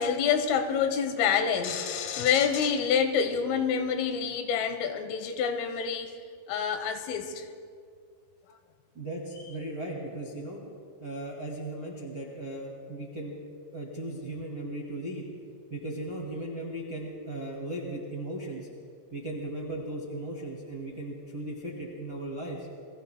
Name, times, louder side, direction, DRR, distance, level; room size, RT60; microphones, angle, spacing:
voice 1, 0.0-6.1 6.5-7.5, left 7 dB, 80° left, 7 dB, 3.6 m, -27 dB
voice 2, 8.9-10.6 11.0-13.4 13.7-15.3 15.7-18.7 19.1-22.7, right 1 dB, 45° right, -3 dB, 1.3 m, -37 dB
29.0 x 22.0 x 2.2 m, 2.1 s
omnidirectional pair, 5.8 m